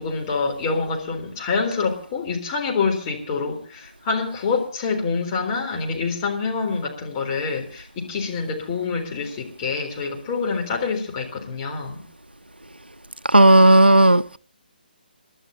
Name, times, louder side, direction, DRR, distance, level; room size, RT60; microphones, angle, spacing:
voice 1, 0.0-12.0, left 4 dB, 25° left, 3.8 m, -26 dB
voice 2, 13.3-14.4, right 1 dB, 90° right, 0.7 m, -12 dB
29.0 x 12.0 x 2.8 m
figure-of-eight pair, 140°, 5 cm